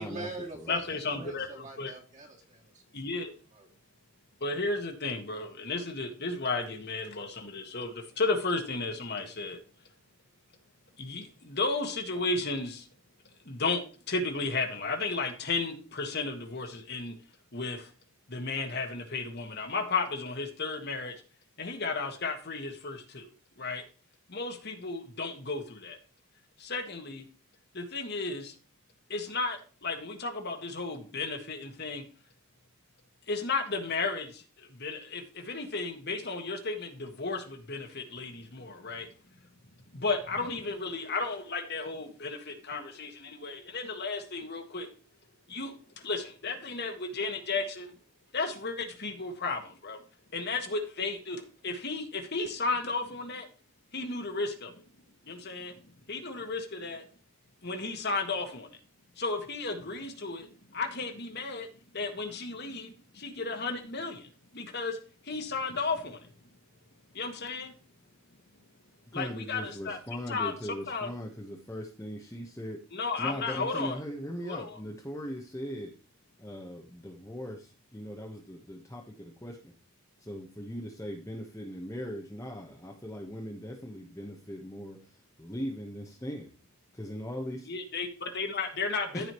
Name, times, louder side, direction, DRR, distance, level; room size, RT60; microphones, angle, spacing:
voice 1, 0.0-3.1 3.5-3.7, right 2 dB, 35° right, -1 dB, 2.7 m, -43 dB
voice 2, 0.7-1.9 2.9-3.3 4.4-9.6 11.0-12.9 13.5-13.8 14.1-17.2 17.5-17.9 18.3-21.2 21.6-23.8 24.3-26.0 26.6-27.3 27.7-28.6 29.1-32.0 33.3-39.1 39.9-44.9 45.5-47.9 48.3-50.0 50.3-53.5 53.9-54.8 55.3-55.7 56.1-57.1 57.6-58.8 59.2-61.7 61.9-65.0 65.2-66.3 67.1-67.7 69.1-70.0 70.3-71.1 72.9-74.0 74.4-74.8 87.7-89.3, left 3 dB, 50° left, 4 dB, 1.7 m, -34 dB
voice 3, 69.1-72.8 73.2-75.9 76.4-79.7 80.2-86.5 86.9-87.6 89.1-89.3, equal, 15° left, -1 dB, 1.1 m, -39 dB
15.0 x 5.0 x 3.1 m, 0.38 s
head